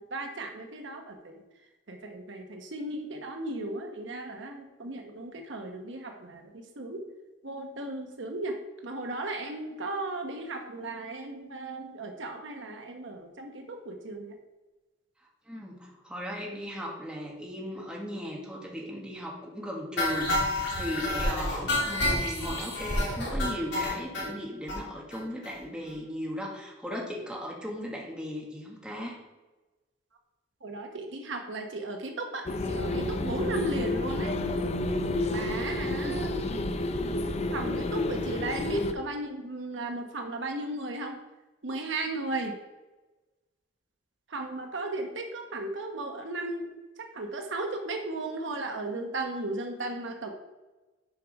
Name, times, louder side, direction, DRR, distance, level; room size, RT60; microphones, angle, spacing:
voice 1, 0.0-1.4 1.9-7.0 7.4-8.5 8.8-14.4 30.6-34.3 35.3-36.4 37.5-41.2 41.6-42.6 44.3-46.7 47.0-50.3, right 2 dB, 70° right, 3 dB, 1.0 m, -35 dB
voice 2, 15.4-29.2 36.0-36.3, equal, 5° right, -2 dB, 1.6 m, -37 dB
sound 1, 20.0-24.3 24.7-24.8 25.1-25.2 25.4-25.6 25.9-26.0, left 1 dB, 65° left, 2.7 m, -29 dB
sound 2, 32.5-38.9, left 2 dB, 35° left, 0.5 m, -30 dB
7.6 x 4.8 x 5.2 m, 1.1 s
head